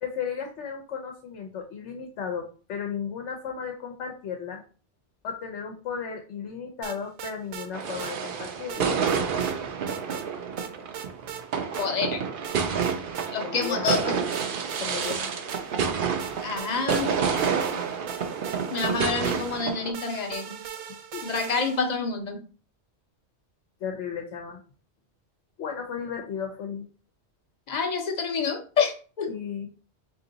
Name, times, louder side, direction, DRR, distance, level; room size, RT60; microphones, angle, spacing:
voice 1, 0.0-4.6 5.2-8.9 13.4-13.9 14.8-15.3 21.1-21.3 23.8-24.6 25.6-26.9 29.3-29.7, left 7 dB, 85° left, 4 dB, 1.0 m, -34 dB
sound 1, 6.8-7.7 8.0-8.1 8.7-9.6 9.9-10.3 10.6-11.4 11.7-11.9 12.4-13.3 13.6-14.0 14.3-15.9 16.2-22.0, right 9 dB, 85° right, 0.9 m, -40 dB
sound 2, 7.7-19.9, right 6 dB, 55° right, 0.7 m, -29 dB
voice 2, 11.8-12.2 13.3-14.2 16.4-17.2 18.7-20.5 21.2-22.4 27.7-29.3, left 5 dB, 45° left, 5 dB, 0.7 m, -28 dB
3.7 x 2.9 x 3.9 m, 0.38 s
omnidirectional pair, 1.2 m